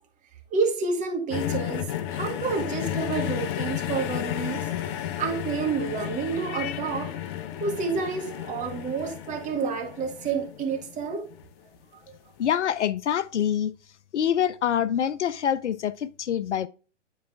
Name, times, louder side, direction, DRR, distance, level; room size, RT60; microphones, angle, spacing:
voice 1, 0.5-7.1 7.6-11.3 12.1-12.2, right 5 dB, 20° right, 1.9 m, -29 dB
sound 1, 1.3-11.5 12.4-12.5, left 11 dB, 20° left, 0.5 m, -33 dB
voice 2, 12.4-13.7 14.1-16.7, left 9 dB, 70° left, 0.5 m, -25 dB
10.0 x 4.7 x 3.6 m
figure-of-eight pair, 125°, 36 cm